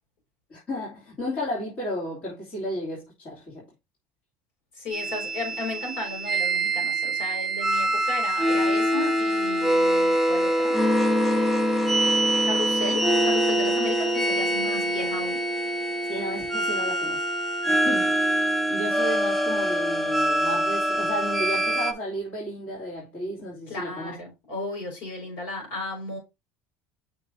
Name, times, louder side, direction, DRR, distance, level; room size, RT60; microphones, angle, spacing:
voice 1, 0.5-3.7 16.1-24.2, equal, 30° left, 2.7 m, -33 dB
voice 2, 4.8-10.8 11.2-15.4 23.7-26.2, left 2 dB, 55° left, 4.0 m, -35 dB
sound 1, 4.9-21.9, right 1 dB, ahead, 0.5 m, -24 dB
5.9 x 3.2 x 5.0 m
cardioid pair, 175°, 6 cm